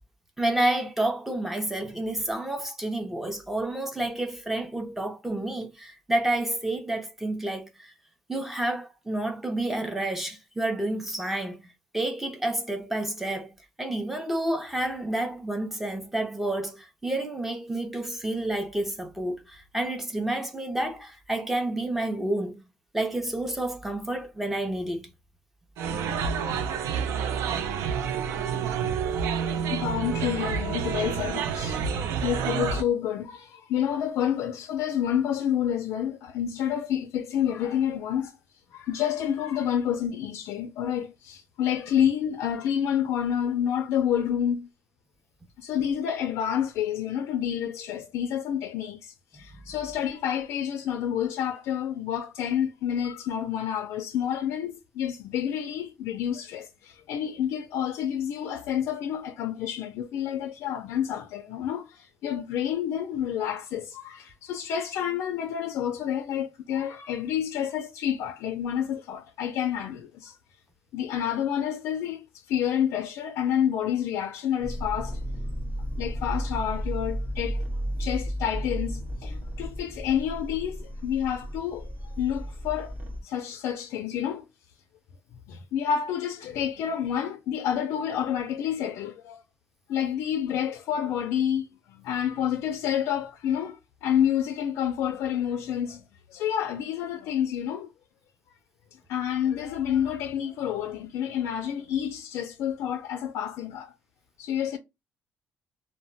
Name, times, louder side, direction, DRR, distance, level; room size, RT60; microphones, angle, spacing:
voice 1, 0.4-7.9 8.3-13.5 13.8-22.6 22.9-25.1 49.3-49.7, right 1 dB, 5° right, 0.5 m, -29 dB
sound 1, 25.8-32.8, right 7 dB, 80° right, 0.4 m, -28 dB
voice 2, 29.7-31.8 32.2-38.4 38.7-44.7 45.6-70.4 70.9-75.2 76.0-77.7 78.0-82.9 83.2-84.4 85.5-89.4 89.9-96.0 96.3-97.9 99.1-103.9 104.4-104.8, left 9 dB, 85° left, 0.3 m, -29 dB
sound 2, 74.6-83.2, equal, 30° right, 0.9 m, -33 dB
2.1 x 2.1 x 3.8 m
cardioid pair, 175°, 5 cm